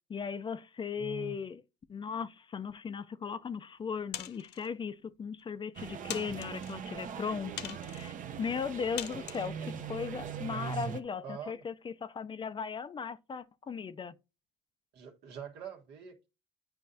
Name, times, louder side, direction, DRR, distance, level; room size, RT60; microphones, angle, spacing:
voice 1, 0.1-1.6 1.9-14.1, left 6 dB, 30° left, 0.5 m, -37 dB
voice 2, 1.0-1.4 11.2-11.6 14.9-16.3, right 7 dB, 80° right, 1.5 m, -44 dB
sound 1, 4.1-4.7 5.4-5.5 6.1-6.8 7.6-8.1 9.0-9.5, left 13 dB, 85° left, 0.6 m, -41 dB
sound 2, 5.7-11.0, right 8 dB, 50° right, 0.8 m, -41 dB
9.3 x 5.2 x 2.7 m
cardioid pair, 110°, 17 cm